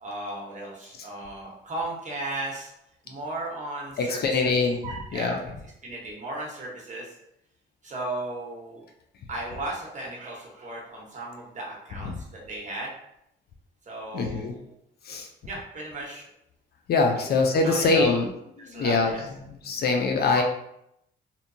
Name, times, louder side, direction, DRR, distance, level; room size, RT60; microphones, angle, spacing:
voice 1, 0.0-2.7 3.0-4.6 4.8-5.4 5.8-7.2 7.8-8.8 9.3-12.9 13.9-14.7 15.4-16.3 17.3-18.2 18.6-19.2 19.6-19.8 20.3-20.4, right 2 dB, 40° right, -3 dB, 0.9 m, -36 dB
voice 2, 4.0-4.8 5.1-5.4 14.1-14.6 15.1-15.3 16.9-18.3 18.7-19.1 19.4-20.4, left 3 dB, 55° left, 3 dB, 0.4 m, -23 dB
2.7 x 2.1 x 2.6 m, 0.79 s
cardioid pair, 90°, 20 cm